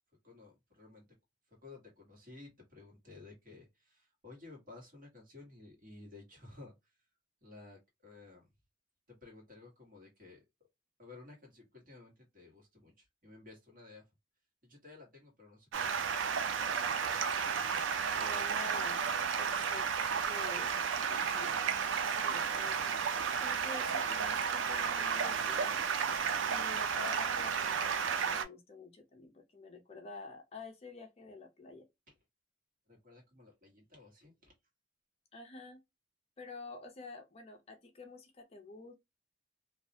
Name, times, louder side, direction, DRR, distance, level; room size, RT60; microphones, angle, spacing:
voice 1, 0.2-1.1 1.6-6.9 7.4-8.5 9.1-10.4 11.0-14.0 14.6-16.2 17.0-17.7 32.9-34.5, left 3 dB, 45° right, 1.2 m, -55 dB
Stream, 15.7-28.4, right 6 dB, 85° right, 0.4 m, -33 dB
voice 2, 18.2-19.0 19.3-19.9 20.3-21.5 22.0-23.0 23.3-25.8 26.5-31.9 35.3-35.8 36.4-38.9, left 3 dB, 35° left, 0.4 m, -49 dB
2.3 x 2.0 x 2.7 m
head